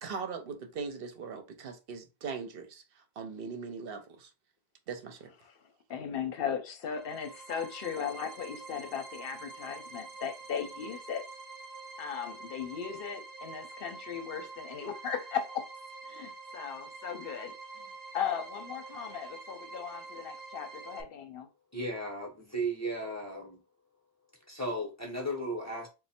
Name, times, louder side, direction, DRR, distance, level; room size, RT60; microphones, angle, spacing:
voice 1, 0.0-4.3 4.9-5.3, right 5 dB, 70° right, 0.8 m, -40 dB
voice 2, 5.9-11.2 12.0-15.7 16.1-17.9 18.1-21.5, left 7 dB, 70° left, 0.8 m, -37 dB
sound 1, 6.8-21.0, right 3 dB, 30° right, 0.4 m, -46 dB
voice 3, 21.7-23.6 24.5-25.9, right 1 dB, 20° left, 0.7 m, -35 dB
3.1 x 2.1 x 4.2 m
omnidirectional pair, 1.0 m